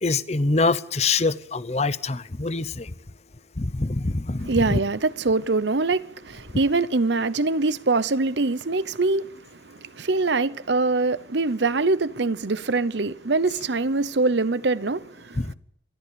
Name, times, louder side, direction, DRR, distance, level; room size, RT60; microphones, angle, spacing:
voice 1, 0.0-2.9 3.6-4.8 15.4-15.5, left 3 dB, 35° left, 0.8 m, -24 dB
voice 2, 4.4-9.3 9.6-15.4, right 3 dB, 65° right, 0.8 m, -23 dB
28.5 x 13.5 x 7.0 m
head